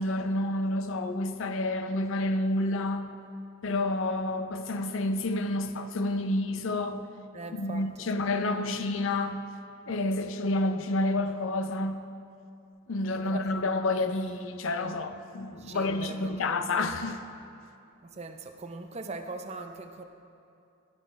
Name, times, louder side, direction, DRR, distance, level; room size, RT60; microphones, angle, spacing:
voice 1, 0.0-3.1 3.6-7.1 7.5-9.5 9.9-12.0 12.9-17.2, left 2 dB, 65° left, 0.5 m, -29 dB
voice 2, 7.3-7.8 13.2-13.4 15.5-16.9 18.0-20.0, right 3 dB, 30° right, 0.5 m, -41 dB
12.5 x 6.0 x 5.1 m
head